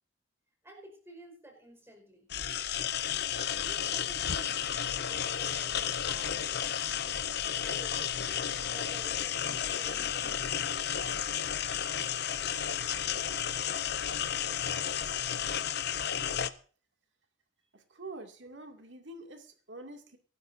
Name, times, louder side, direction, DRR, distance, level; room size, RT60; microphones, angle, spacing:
voice 1, 0.6-2.3 3.6-7.0 7.6-10.6, right 1 dB, 15° right, 2 dB, 5.0 m, -52 dB
sound 1, 2.3-16.5, left 9 dB, 55° left, 0.8 m, -32 dB
voice 2, 17.7-20.2, right 2 dB, 65° right, 4 dB, 2.4 m, -46 dB
23.5 x 12.5 x 2.7 m, 0.40 s
head